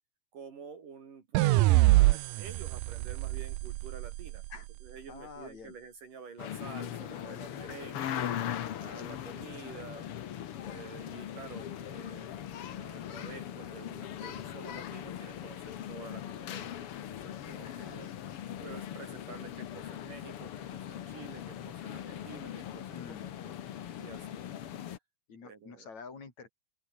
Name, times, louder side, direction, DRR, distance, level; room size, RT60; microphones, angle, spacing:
voice 1, 0.3-4.4 4.8-8.3 8.8-10.1 10.6-18.1 18.6-23.5 24.0-24.4 25.4-25.9, right 5 dB, 55° right, 4.7 m, -49 dB
sound 1, 1.3-4.6, right 19 dB, 85° right, 1.9 m, -25 dB
voice 2, 5.1-5.7 17.6-18.0 22.9-23.3 25.3-26.5, left 5 dB, 45° left, 5.7 m, -48 dB
sound 2, 6.4-25.0, left 10 dB, 90° left, 1.2 m, -40 dB
open air
omnidirectional pair, 4.5 m